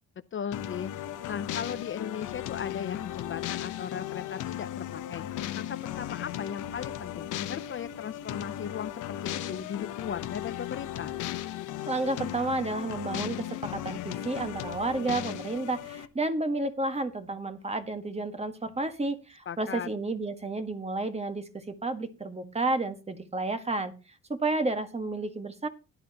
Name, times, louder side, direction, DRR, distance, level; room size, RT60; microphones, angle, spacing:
voice 1, 0.3-11.1 19.5-19.9, left 8 dB, 40° left, 12 dB, 0.7 m, -37 dB
sound 1, 0.5-16.1, left 12 dB, 85° left, 1.1 m, -36 dB
voice 2, 11.9-25.7, right 2 dB, 20° right, 8 dB, 1.6 m, -31 dB
16.5 x 10.5 x 3.0 m, 0.30 s
cardioid pair, 90°, 30 cm